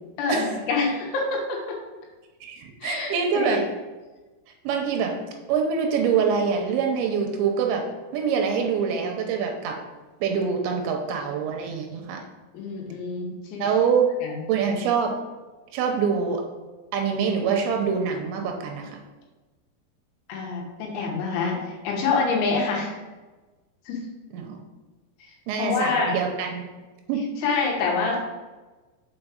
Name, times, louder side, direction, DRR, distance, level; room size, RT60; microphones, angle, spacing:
voice 1, 0.2-1.6 2.8-3.1 3.3-3.6 12.5-13.7 14.2-14.3 20.3-23.0 23.9-24.0 25.6-26.2 27.4-28.2, left 4 dB, 80° left, 0 dB, 3.6 m, -26 dB
voice 2, 2.4-3.6 4.6-5.2 5.5-7.9 8.1-9.8 10.2-12.2 13.6-14.1 14.5-15.1 15.7-16.4 16.9-19.0 24.3-24.6 25.5-26.6 27.1-27.2, right 6 dB, 85° right, 3 dB, 3.0 m, -25 dB
7.1 x 4.7 x 5.1 m, 1.2 s
omnidirectional pair, 5.5 m